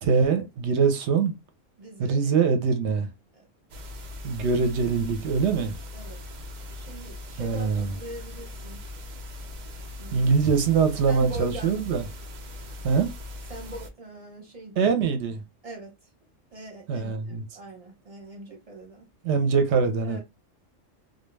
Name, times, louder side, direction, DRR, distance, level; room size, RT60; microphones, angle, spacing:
voice 1, 0.0-1.3 2.0-3.1 4.2-5.8 7.4-7.9 10.1-12.0 12.8-13.1 14.8-15.4 16.9-17.4 19.2-20.2, right 5 dB, 70° right, 0.8 m, -23 dB
voice 2, 1.8-2.5 3.3-3.5 5.9-6.2 6.7-8.8 10.0-10.3 11.1-11.8 13.5-14.8 15.6-15.9 16.5-19.1 20.0-20.2, right 2 dB, 35° right, 0.8 m, -41 dB
sound 1, 3.7-13.9, left 2 dB, 90° right, 0.4 m, -40 dB
2.2 x 2.2 x 3.1 m
omnidirectional pair, 1.3 m